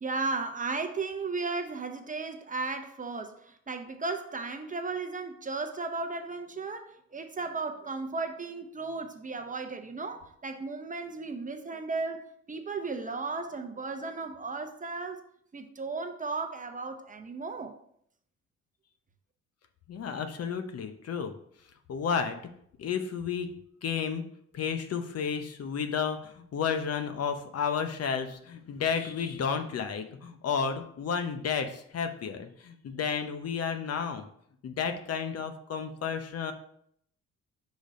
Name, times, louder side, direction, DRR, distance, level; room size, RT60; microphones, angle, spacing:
voice 1, 0.0-15.2 15.5-17.7, right 3 dB, 25° right, 0.7 m, -35 dB
voice 2, 19.9-21.3 21.9-22.4 22.8-23.5 23.8-24.2 24.5-34.3 34.6-36.5, left 6 dB, 55° left, 0.8 m, -32 dB
5.2 x 3.9 x 5.1 m
cardioid pair, 90°, 30 cm